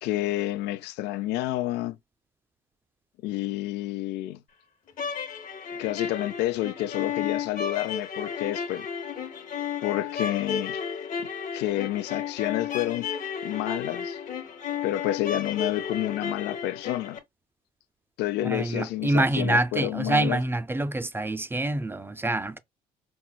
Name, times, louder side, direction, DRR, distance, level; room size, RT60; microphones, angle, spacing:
voice 1, 0.0-2.0 3.2-4.4 5.8-8.9 9.8-10.8 11.2-13.1 13.4-14.2 14.8-17.2 18.2-20.4, left 15 dB, 85° left, 0.4 m, -29 dB
sound 1, 4.9-17.2, left 7 dB, 50° left, 1.0 m, -33 dB
voice 2, 18.4-22.6, right 2 dB, 15° right, 0.4 m, -26 dB
5.5 x 2.0 x 2.2 m
cardioid pair, 110°, 17 cm